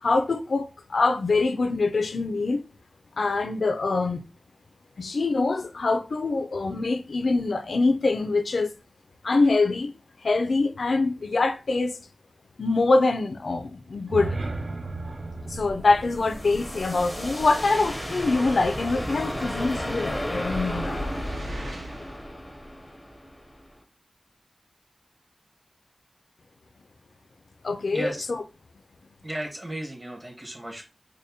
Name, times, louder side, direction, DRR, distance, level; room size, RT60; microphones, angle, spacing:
voice 1, 0.0-2.6 3.2-4.2 5.0-8.7 9.2-9.9 10.2-12.0 12.6-14.4 15.5-21.0 27.6-28.4, left 3 dB, 75° left, 0.4 m, -24 dB
sound 1, 13.9-18.0, right 3 dB, 55° right, 0.4 m, -36 dB
sound 2, 14.9-23.8, equal, 5° left, 0.6 m, -34 dB
sound 3, 19.6-22.2, equal, 90° right, 0.8 m, -37 dB
voice 2, 27.9-28.3 29.2-30.8, right 1 dB, 30° right, 1.2 m, -34 dB
4.9 x 2.1 x 2.7 m
wide cardioid pair, 85°, 0 cm